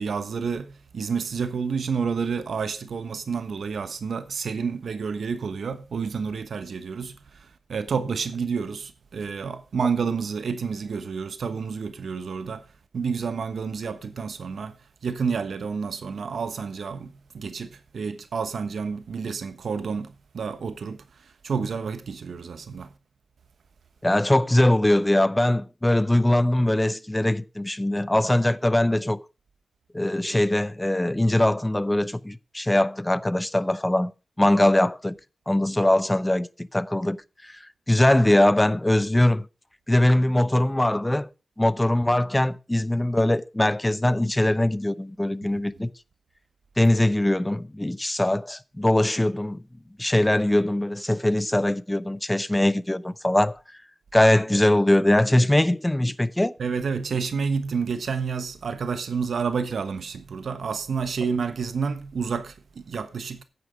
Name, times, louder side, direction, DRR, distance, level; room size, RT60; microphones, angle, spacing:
voice 1, 0.0-12.6 12.9-14.7 15.0-22.9 45.5-45.6 56.6-63.4, right 5 dB, 80° right, 1.1 m, -29 dB
voice 2, 24.0-29.2 29.9-34.1 34.4-35.2 35.5-37.2 37.4-37.6 37.9-39.5 39.9-41.3 41.6-45.9 46.8-49.6 50.0-53.6 54.1-56.6, left 1 dB, 15° left, 0.7 m, -21 dB
9.5 x 9.4 x 5.0 m
cardioid pair, 65°, 0 cm